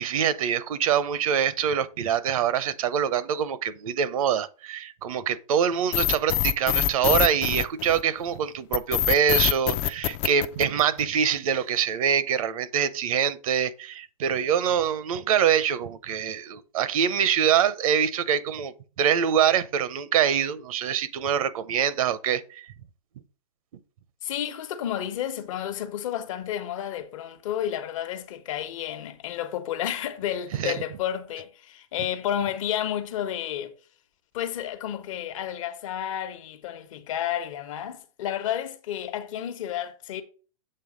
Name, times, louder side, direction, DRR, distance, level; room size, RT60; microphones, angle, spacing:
voice 1, 0.0-22.7 30.6-30.8, right 8 dB, 65° right, 0.7 m, -24 dB
sound 1, 5.9-8.2 8.7-11.2, left 13 dB, 30° left, 0.4 m, -24 dB
voice 2, 24.2-33.7 34.3-40.2, left 10 dB, 60° left, 1.1 m, -31 dB
7.7 x 3.4 x 5.0 m
hypercardioid pair, 140°, 19 cm